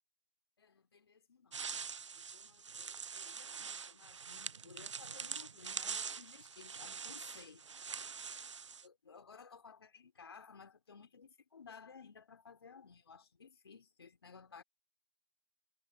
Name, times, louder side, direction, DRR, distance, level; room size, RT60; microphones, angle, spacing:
voice 1, 0.6-1.6 2.1-7.7 8.6-14.6, left 5 dB, 50° left, 3.0 m, -57 dB
sound 1, 1.5-8.9, right 6 dB, 60° right, 0.5 m, -44 dB
figure-of-eight pair, 165°, 17 cm